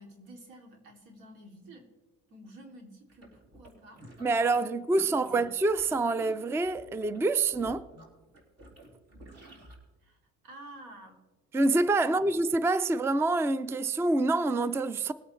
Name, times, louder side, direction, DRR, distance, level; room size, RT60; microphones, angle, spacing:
voice 1, 0.0-1.9 2.3-4.3 4.5-5.4 10.0-10.2 10.4-11.3 12.0-12.4, right 1 dB, 90° right, 2.8 m, -50 dB
sound 1, 3.1-4.6 4.9-9.7, right 1 dB, 45° right, 3.5 m, -52 dB
voice 2, 4.2-7.9 11.5-15.1, right 2 dB, 10° right, 0.4 m, -26 dB
20.5 x 8.8 x 3.2 m
cardioid pair, 100°, 34 cm